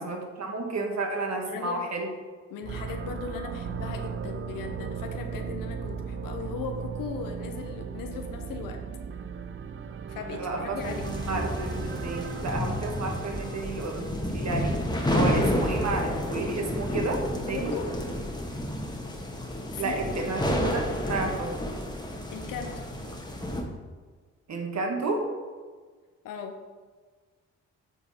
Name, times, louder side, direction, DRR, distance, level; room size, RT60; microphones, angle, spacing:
voice 1, 0.0-2.1 10.3-10.9 11.3-14.1 14.3-14.8 15.1-17.7 19.8-21.5 24.5-25.2, right 3 dB, 55° right, 2 dB, 1.5 m, -31 dB
voice 2, 1.4-1.9 2.5-8.8 10.1-11.2 17.5-17.9 19.7-20.2 22.3-22.9 26.2-26.6, left 5 dB, 80° left, 5 dB, 0.7 m, -38 dB
sound 1, 2.6-14.6, right 6 dB, 40° right, 0.5 m, -37 dB
sound 2, 10.8-23.6, left 1 dB, 10° left, 1.3 m, -30 dB
8.0 x 4.0 x 4.2 m, 1.5 s
supercardioid pair, 50°, 33 cm